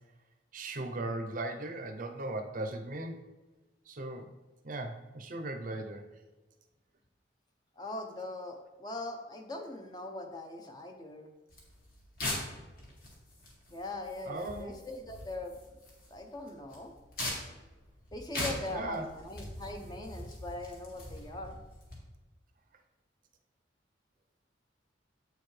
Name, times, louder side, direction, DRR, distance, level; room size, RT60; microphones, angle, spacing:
voice 1, 0.5-3.2 3.9-4.3 4.6-6.1 14.2-14.8 18.7-19.1, right 2 dB, 45° right, 5 dB, 0.6 m, -38 dB
voice 2, 7.8-11.3 13.7-15.6 16.1-16.9 18.1-21.6, left 2 dB, 20° left, 4 dB, 0.7 m, -41 dB
sound 1, 11.5-22.0, left 1 dB, 50° left, 2.0 m, -42 dB
8.0 x 6.7 x 3.2 m, 1.2 s
head